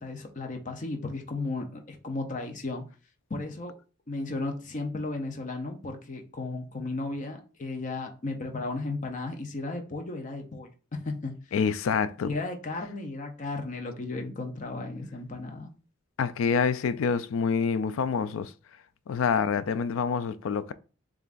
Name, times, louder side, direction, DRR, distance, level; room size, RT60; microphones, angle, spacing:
voice 1, 0.0-2.8 3.3-3.7 4.1-11.4 12.2-15.7, left 2 dB, 40° left, 0.6 m, -34 dB
voice 2, 11.5-12.3 16.2-18.5 19.1-20.7, left 6 dB, 90° left, 0.4 m, -27 dB
6.7 x 2.5 x 2.5 m
head